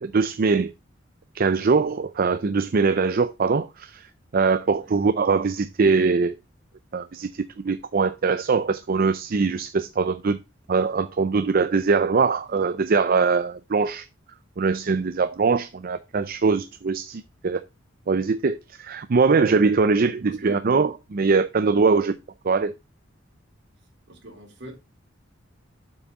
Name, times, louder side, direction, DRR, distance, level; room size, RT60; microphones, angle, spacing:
voice 1, 0.0-0.7 1.3-4.1 4.3-6.4 6.9-10.4 10.7-14.1 14.6-17.6 18.1-22.1 22.4-22.7, right 4 dB, 50° right, 0.5 m, -22 dB
voice 2, 20.3-20.6 21.9-22.0 24.1-24.7, right 1 dB, 65° right, 4.0 m, -42 dB
7.9 x 6.0 x 4.0 m
head